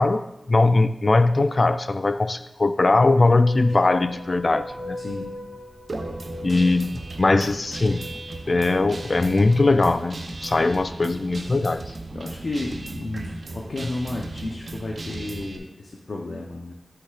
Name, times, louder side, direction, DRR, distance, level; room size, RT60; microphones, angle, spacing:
voice 1, 0.0-5.0 6.4-8.1 8.5-11.8, left 3 dB, 50° left, 12 dB, 0.4 m, -20 dB
sound 1, 3.0-11.0, left 1 dB, 5° left, 2.2 m, -40 dB
voice 2, 5.0-5.3 12.1-16.7, left 2 dB, 70° left, -1 dB, 0.8 m, -32 dB
Guitar, 5.9-15.6, right 2 dB, 65° right, 0.7 m, -36 dB
8.0 x 6.7 x 2.4 m, 0.87 s
cardioid pair, 50°, 0 cm